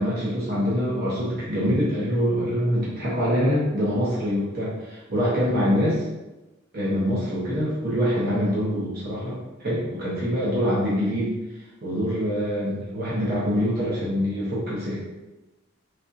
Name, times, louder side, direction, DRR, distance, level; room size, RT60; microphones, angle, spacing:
voice 1, 0.0-6.0 6.7-11.3 11.8-14.9, equal, 50° right, -7 dB, 0.8 m, -25 dB
3.4 x 2.5 x 2.6 m, 1.0 s
head